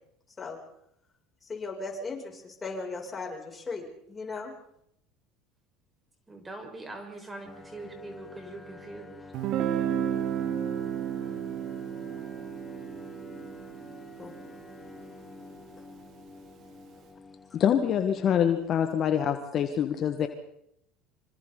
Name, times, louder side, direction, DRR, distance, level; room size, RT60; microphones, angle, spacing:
voice 1, 1.5-4.5 14.2-14.3, left 3 dB, 25° left, 0 dB, 7.3 m, -37 dB
voice 2, 6.3-9.3, right 2 dB, 15° right, 4 dB, 5.6 m, -42 dB
sound 1, 7.4-19.1, left 3 dB, 5° left, 3.2 m, -49 dB
Guitar, 9.3-15.1, right 9 dB, 55° right, 2.5 m, -33 dB
voice 3, 17.5-20.3, left 9 dB, 45° left, 7 dB, 1.8 m, -25 dB
26.0 x 26.0 x 4.1 m, 0.76 s
hypercardioid pair, 80°, 0 cm